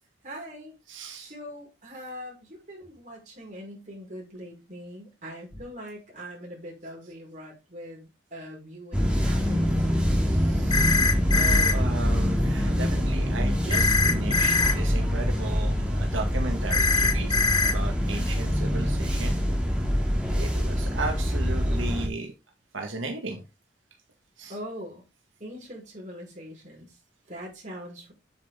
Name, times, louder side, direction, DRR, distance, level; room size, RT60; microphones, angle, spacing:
voice 1, 0.2-0.8 1.1-9.9 24.5-25.0 25.4-28.1, equal, 40° right, 5.2 m, -42 dB
voice 2, 0.9-1.3 10.3-11.0 11.3-19.4 20.3-22.3 22.7-23.4 24.4-24.5, right 3 dB, 85° right, 1.7 m, -35 dB
sound 1, 8.9-22.1, equal, 5° right, 2.4 m, -25 dB
sound 2, 10.7-11.7 13.7-14.7 16.7-17.7, left 4 dB, 20° left, 0.7 m, -22 dB
8.9 x 7.4 x 3.6 m
head